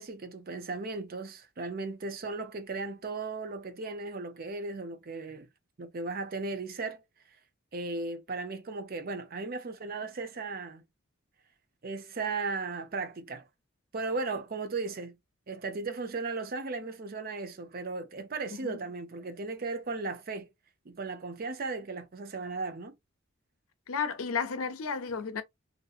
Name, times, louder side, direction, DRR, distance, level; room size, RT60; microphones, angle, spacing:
voice 1, 0.0-5.5 5.8-7.0 7.7-10.8 11.8-13.4 13.9-15.1 15.5-20.5 20.9-22.9, right 3 dB, 45° right, 0.5 m, -36 dB
voice 2, 23.9-25.4, left 5 dB, 85° left, 0.6 m, -32 dB
2.7 x 2.6 x 2.4 m
head